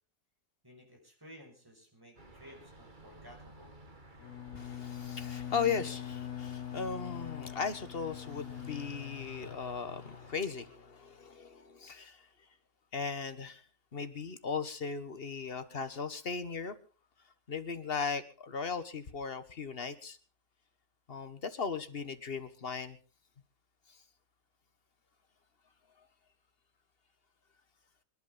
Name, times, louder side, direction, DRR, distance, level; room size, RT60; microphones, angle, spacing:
voice 1, 0.6-3.8, equal, 15° right, 6.2 m, -55 dB
sound 1, 2.2-10.3, right 1 dB, 30° right, 2.1 m, -55 dB
Bowed string instrument, 4.2-10.8, left 11 dB, 65° left, 1.3 m, -43 dB
voice 2, 4.5-12.3 12.9-13.6 13.9-16.7 17.5-20.2 21.1-23.0, left 5 dB, 40° left, 1.5 m, -37 dB
27.0 x 11.5 x 4.0 m
omnidirectional pair, 1.6 m